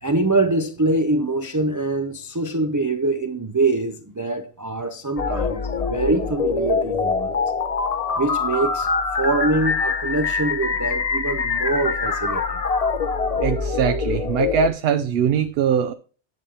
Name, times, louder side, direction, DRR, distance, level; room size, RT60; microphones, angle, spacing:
voice 1, 0.0-7.4 8.2-8.9 9.2-12.6, right 2 dB, 30° right, 0.3 m, -24 dB
sound 1, 5.2-14.7, left 4 dB, 40° left, 0.7 m, -24 dB
voice 2, 13.4-15.9, right 9 dB, 70° right, 0.7 m, -22 dB
10.5 x 6.9 x 2.9 m
omnidirectional pair, 1.1 m